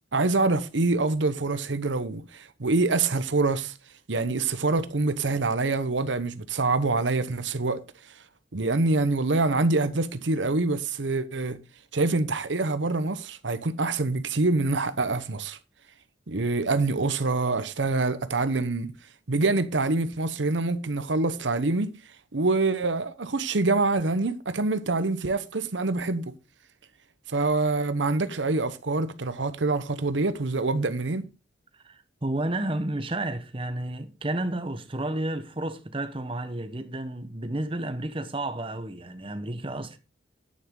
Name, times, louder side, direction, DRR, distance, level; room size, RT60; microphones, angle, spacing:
voice 1, 0.1-3.7 4.1-7.8 8.5-11.6 11.9-15.6 16.3-18.9 19.3-21.9 22.3-26.3 27.3-31.2, right 3 dB, 85° right, 1.0 m, -25 dB
voice 2, 31.8-40.0, right 1 dB, 30° right, 1.0 m, -31 dB
10.0 x 9.4 x 3.8 m
head